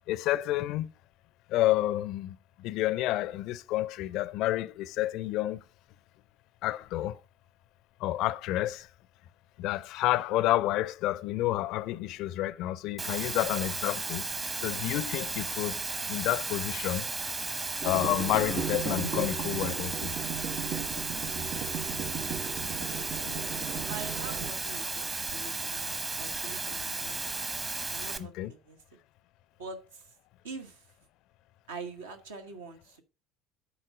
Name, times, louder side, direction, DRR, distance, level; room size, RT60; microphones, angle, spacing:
voice 1, 0.1-0.9 1.5-5.6 6.6-7.2 8.0-8.9 9.6-14.2 14.6-15.8 16.1-17.1 17.8-20.1 28.2-28.5, left 15 dB, 55° left, 0.4 m, -29 dB
Water, 13.0-28.2, right 3 dB, 25° right, 1.0 m, -34 dB
sound 1, 17.8-24.5, right 8 dB, 45° right, 0.5 m, -36 dB
voice 2, 23.8-27.4 27.9-29.0 29.6-30.1 30.4-30.9 31.7-33.0, right 4 dB, 75° right, 1.2 m, -45 dB
10.0 x 4.3 x 5.0 m
figure-of-eight pair, 65°, 0 cm